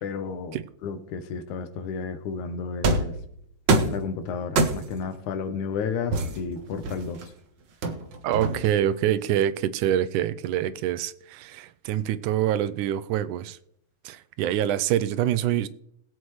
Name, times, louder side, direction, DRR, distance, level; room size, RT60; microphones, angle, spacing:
voice 1, 0.0-0.6 0.8-3.1 3.9-7.3, left 5 dB, 75° left, 2.3 m, -32 dB
sound 1, 2.8-3.2 3.7-4.0 4.6-5.0 6.1-7.2 7.8-8.8, right 3 dB, 70° right, 1.0 m, -24 dB
voice 2, 8.2-13.6 14.0-15.7, right 11 dB, 90° right, 2.1 m, -25 dB
20.5 x 8.0 x 3.2 m
omnidirectional pair, 3.6 m